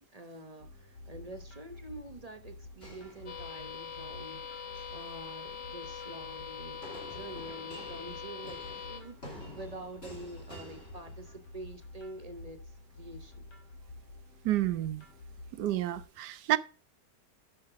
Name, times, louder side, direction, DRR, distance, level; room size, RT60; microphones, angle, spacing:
voice 1, 0.1-4.6 4.9-13.5, right 1 dB, 30° right, 0.8 m, -47 dB
sound 1, 0.6-16.0, left 2 dB, 75° left, 2.7 m, -50 dB
sound 2, 2.8-3.9 4.6-5.1 6.8-11.7, equal, 35° left, 3.5 m, -49 dB
sound 3, 3.3-9.0, left 7 dB, 50° left, 1.5 m, -43 dB
voice 2, 14.4-15.0 15.6-16.6, right 14 dB, 75° right, 1.2 m, -29 dB
9.7 x 6.9 x 4.9 m
omnidirectional pair, 1.8 m